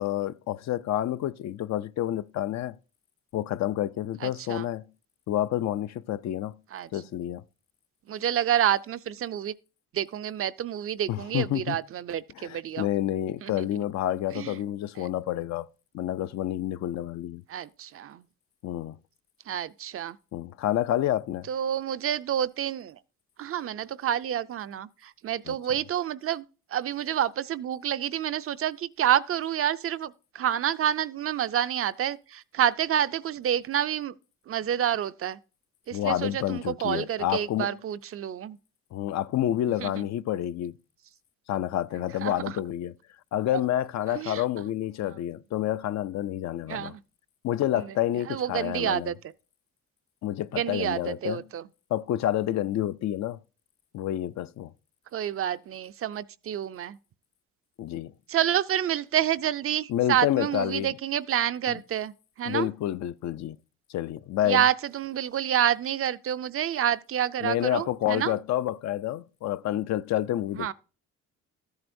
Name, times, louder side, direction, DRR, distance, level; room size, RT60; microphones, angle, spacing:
voice 1, 0.0-2.8 3.3-4.8 5.3-6.5 6.9-7.4 11.1-11.8 12.4-15.7 15.9-17.4 18.6-19.0 20.3-21.5 25.5-25.6 35.9-37.7 38.9-40.7 41.5-42.9 43.3-46.9 47.4-49.1 50.2-51.4 51.9-53.4 53.9-54.7 57.8-58.1 59.9-60.9 61.7-61.8 62.5-63.6 63.9-64.6 67.4-70.7, left 12 dB, 65° left, 0.5 m, -29 dB
voice 2, 4.2-4.7 6.7-6.9 8.1-9.5 9.9-12.9 13.4-13.7 14.3-14.6 15.0-15.1 17.5-18.2 19.5-20.2 21.5-23.0 23.4-26.4 26.7-34.1 34.5-35.4 35.9-38.6 39.8-39.9 42.2-42.5 44.1-44.4 45.1-45.2 46.7-47.0 47.7-47.8 48.3-49.1 50.5-51.6 55.1-57.0 58.3-62.1 62.4-62.7 64.5-68.3 70.6-70.7, right 10 dB, 50° right, 0.4 m, -28 dB
13.5 x 7.9 x 2.6 m
cardioid pair, 90°, 30 cm